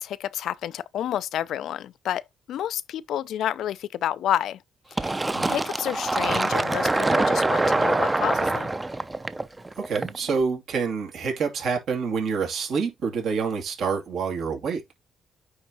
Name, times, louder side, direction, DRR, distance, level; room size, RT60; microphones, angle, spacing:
voice 1, 0.0-4.6 5.0-5.2 5.5-8.7, left 11 dB, 75° left, 0.4 m, -30 dB
Fill (with liquid), 5.0-10.4, right 2 dB, 20° right, 0.6 m, -24 dB
voice 2, 9.8-14.8, right 5 dB, 70° right, 2.7 m, -27 dB
9.3 x 3.5 x 3.0 m
cardioid pair, 90°, 0 cm